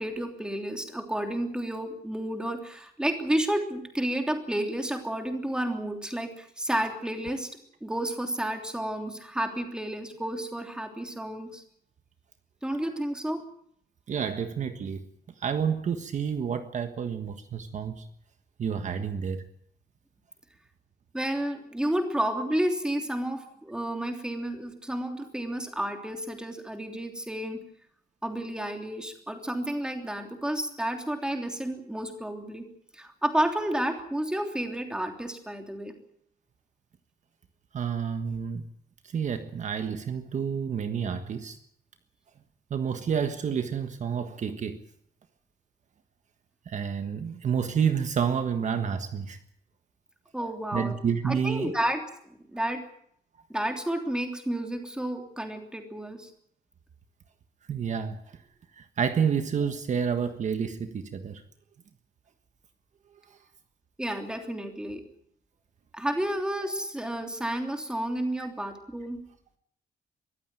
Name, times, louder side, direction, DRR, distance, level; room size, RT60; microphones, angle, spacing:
voice 1, 0.0-7.5 7.8-11.6 12.6-13.4 21.1-27.6 28.2-32.7 32.9-35.9 50.3-51.0 51.2-52.0 52.5-52.8 53.5-56.3 64.0-65.0 65.9-69.2, right 1 dB, 5° right, 3.2 m, -31 dB
voice 2, 14.1-15.0 15.4-18.0 18.6-19.4 37.7-38.7 39.0-41.6 42.7-44.8 46.6-49.4 50.7-51.7 57.7-58.4 58.7-61.4 63.3-63.4 68.4-68.5, right 7 dB, 50° right, 1.5 m, -29 dB
23.5 x 15.0 x 9.1 m
wide cardioid pair, 170°, 16 cm